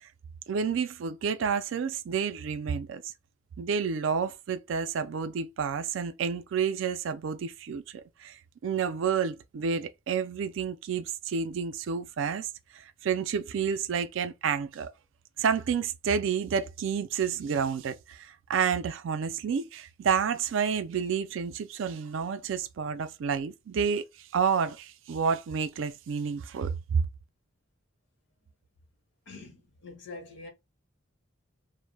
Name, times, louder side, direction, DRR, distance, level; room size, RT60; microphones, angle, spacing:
voice 1, 0.5-3.0 3.6-7.8 8.2-12.5 12.7-14.9 15.4-27.0, right 6 dB, 65° right, 0.3 m, -30 dB
voice 2, 29.3-30.5, left 3 dB, 55° left, 0.7 m, -45 dB
2.1 x 2.0 x 3.2 m
head